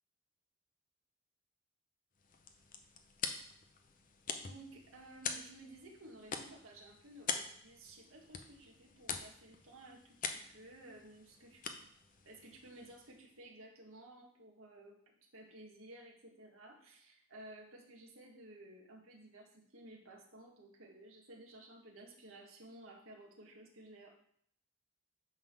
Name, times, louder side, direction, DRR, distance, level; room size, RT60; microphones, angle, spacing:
sound 1, 2.1-13.4, left 6 dB, 35° left, 0.7 m, -45 dB
voice 1, 4.4-11.9 12.3-24.2, right 1 dB, 65° right, 0 dB, 1.8 m, -55 dB
9.4 x 3.7 x 6.1 m, 0.65 s
head